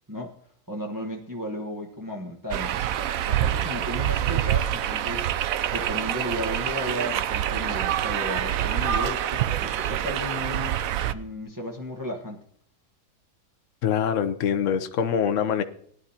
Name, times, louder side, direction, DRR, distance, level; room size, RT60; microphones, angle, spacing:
voice 1, 0.7-2.9 3.2-5.3 5.7-10.8 11.1-12.4, left 1 dB, 15° right, 1.2 m, -34 dB
sound 1, 2.5-11.1, right 11 dB, 70° right, 1.0 m, -26 dB
voice 2, 13.8-15.6, left 8 dB, 60° left, 1.1 m, -24 dB
19.0 x 11.0 x 2.9 m
omnidirectional pair, 1.6 m